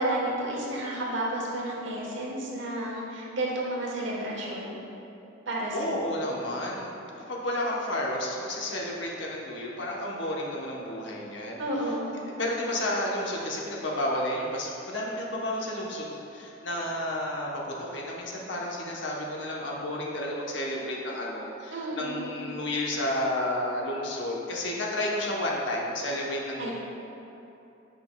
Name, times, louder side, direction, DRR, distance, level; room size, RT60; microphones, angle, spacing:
voice 1, 0.0-4.8 5.5-6.0 11.6-12.2 21.7-22.4 26.6-26.7, right 1 dB, 70° right, -3 dB, 1.2 m, -31 dB
voice 2, 5.7-7.0 7.3-11.6 12.4-26.7, left 1 dB, 65° left, -2 dB, 0.9 m, -31 dB
9.1 x 5.1 x 2.2 m, 2.9 s
head